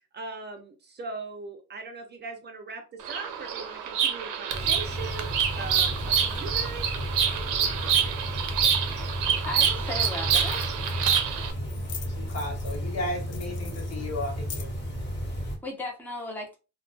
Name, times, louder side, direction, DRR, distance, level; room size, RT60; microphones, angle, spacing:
voice 1, 0.1-6.9, right 3 dB, 35° right, 0.5 m, -40 dB
Bird vocalization bird call bird song, 3.0-11.5, right 8 dB, 85° right, 0.5 m, -27 dB
sound 1, 4.5-15.6, equal, 35° left, 1.0 m, -33 dB
sound 2, 8.9-9.0 9.8-9.9 10.0-10.1 10.4-11.2 11.7-12.9 13.3-14.9, left 8 dB, 90° left, 0.5 m, -43 dB
voice 2, 9.4-10.9 15.3-16.6, left 2 dB, 5° left, 0.6 m, -36 dB
voice 3, 12.2-14.7, left 1 dB, 60° left, 1.1 m, -34 dB
2.2 x 2.2 x 2.5 m
cardioid pair, 90°, 30 cm